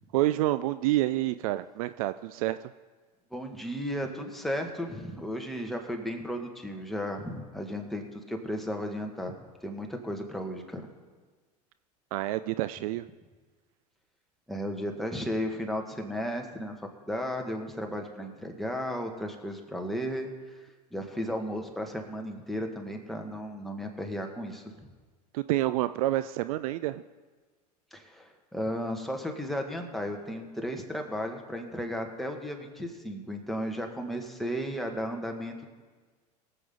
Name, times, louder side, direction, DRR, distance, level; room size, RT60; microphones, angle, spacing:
voice 1, 0.1-2.7 12.1-13.0 25.3-27.0, right 15 dB, 60° right, 13 dB, 0.4 m, -28 dB
voice 2, 3.3-9.3 9.6-10.9 14.5-20.3 20.9-24.7 27.9-35.7, equal, ahead, 2 dB, 1.9 m, -34 dB
22.5 x 7.7 x 3.9 m, 1.4 s
figure-of-eight pair, 80°, 21 cm